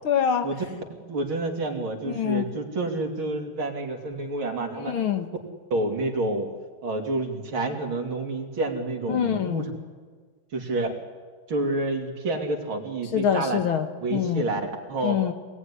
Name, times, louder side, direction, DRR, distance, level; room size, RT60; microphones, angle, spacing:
voice 1, 0.0-0.5 2.1-2.5 4.8-5.3 9.1-9.7 13.1-14.4 15.0-15.3, left 9 dB, 90° left, 7 dB, 2.6 m, -25 dB
voice 2, 1.1-4.9 5.7-6.5 6.8-9.6 10.5-11.0 11.5-13.6 14.0-14.6 14.9-15.2, right 2 dB, 80° right, 3 dB, 3.7 m, -28 dB
25.5 x 19.0 x 9.9 m, 1.5 s
omnidirectional pair, 2.2 m